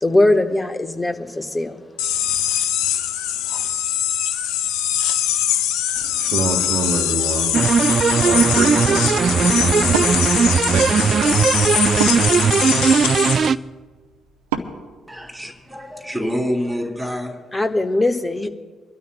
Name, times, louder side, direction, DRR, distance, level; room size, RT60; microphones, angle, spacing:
voice 1, 0.0-1.8 17.5-18.5, left 2 dB, 20° left, 1.2 m, -20 dB
sound 1, 2.0-13.5, left 10 dB, 75° left, 0.5 m, -22 dB
voice 2, 6.0-12.3, right 4 dB, 65° right, 1.2 m, -28 dB
sound 2, 7.5-13.6, right 6 dB, 50° right, 0.3 m, -18 dB
Wood, 11.9-15.9, right 7 dB, 85° right, 0.7 m, -33 dB
voice 3, 15.1-17.6, equal, 5° left, 2.8 m, -27 dB
28.0 x 12.5 x 2.2 m
hypercardioid pair, 45°, 0 cm